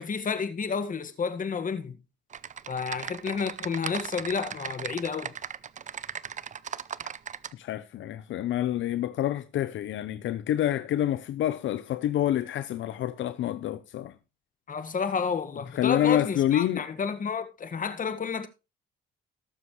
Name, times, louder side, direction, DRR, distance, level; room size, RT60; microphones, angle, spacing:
voice 1, 0.0-2.0 2.7-5.3 14.7-18.5, left 6 dB, 45° left, 1.8 m, -30 dB
Typing, 2.3-7.5, right 7 dB, 40° right, 0.6 m, -37 dB
voice 2, 7.5-14.1 15.8-16.8, left 12 dB, 75° left, 0.7 m, -27 dB
19.0 x 7.1 x 3.2 m
cardioid pair, 90°, 20 cm